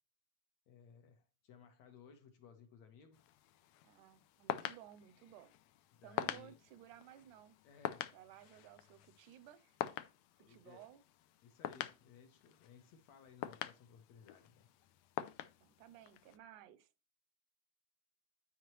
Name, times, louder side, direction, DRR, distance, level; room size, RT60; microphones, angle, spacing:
voice 1, 0.7-3.3 5.9-6.6 7.6-8.1 10.4-10.9 11.4-14.8, left 6 dB, 65° left, 1.8 m, -60 dB
sound 1, 3.1-16.4, left 13 dB, 90° left, 1.5 m, -46 dB
voice 2, 3.8-5.5 6.0-7.6 8.1-9.8 10.4-11.0 15.6-16.9, right 11 dB, 80° right, 2.0 m, -58 dB
11.0 x 5.5 x 3.1 m
omnidirectional pair, 3.7 m